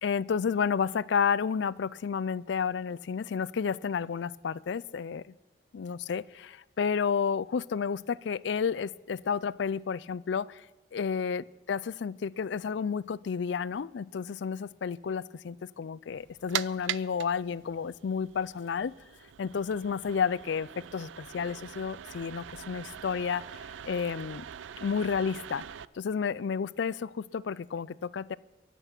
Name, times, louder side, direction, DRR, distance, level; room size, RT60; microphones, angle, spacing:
voice 1, 0.0-5.3 5.7-10.7 10.9-18.9 19.4-24.5 24.8-25.7 25.9-28.4, left 6 dB, 70° left, 21 dB, 0.4 m, -31 dB
sound 1, 16.1-25.8, right 10 dB, 85° right, 0.4 m, -42 dB
22.5 x 8.1 x 6.0 m, 1.1 s
head